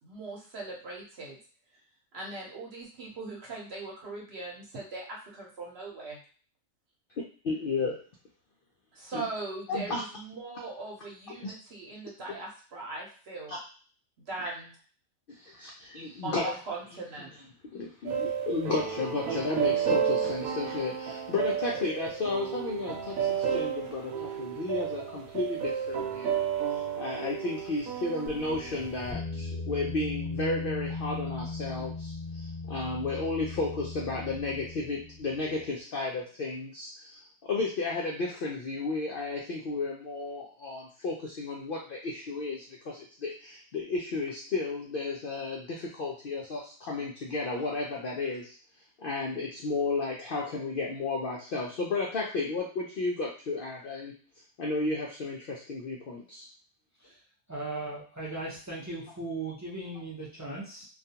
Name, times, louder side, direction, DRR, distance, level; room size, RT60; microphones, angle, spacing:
voice 1, 0.0-1.4 2.1-6.2 8.9-13.6 14.3-14.7 16.2-17.3, right 3 dB, 55° right, -3 dB, 0.9 m, -40 dB
voice 2, 7.4-8.0 9.1-9.3 9.7-9.8 11.3-11.5 12.2-12.4 13.5-13.6 15.3-16.5 17.7-26.4 26.7-48.6 49.0-54.1 54.6-56.5, left 3 dB, 70° left, -2 dB, 0.5 m, -33 dB
sound 1, 18.1-29.1, right 8 dB, 85° right, 1.0 m, -32 dB
sound 2, 28.3-35.7, left 3 dB, 15° left, 1.0 m, -38 dB
voice 3, 57.5-60.9, right 2 dB, 25° right, -6 dB, 0.4 m, -37 dB
2.4 x 2.3 x 2.8 m, 0.41 s
omnidirectional pair, 1.4 m